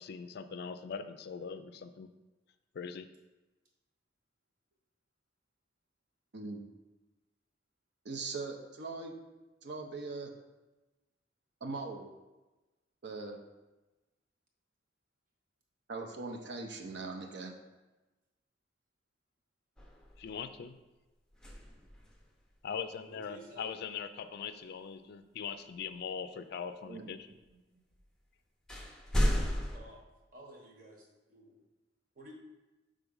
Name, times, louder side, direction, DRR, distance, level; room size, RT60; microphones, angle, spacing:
voice 1, 0.0-2.1 2.7-3.1 20.2-20.8 22.6-27.2, left 6 dB, 60° left, 10 dB, 0.3 m, -41 dB
voice 2, 6.3-6.7 8.0-9.1 9.6-10.3 11.6-12.1 13.0-13.4 15.9-17.6 26.9-27.4, right 3 dB, 65° right, 2 dB, 0.7 m, -41 dB
sound 1, 19.8-20.5 21.3-22.3 25.8-25.9 27.9-28.0 28.7-29.8, equal, 5° left, 0.6 m, -33 dB
voice 3, 23.1-23.7 27.5-27.8 29.7-30.0 30.3-31.6 32.1-32.3, right 1 dB, 50° right, 0 dB, 1.2 m, -54 dB
4.6 x 3.8 x 5.4 m, 1.1 s
head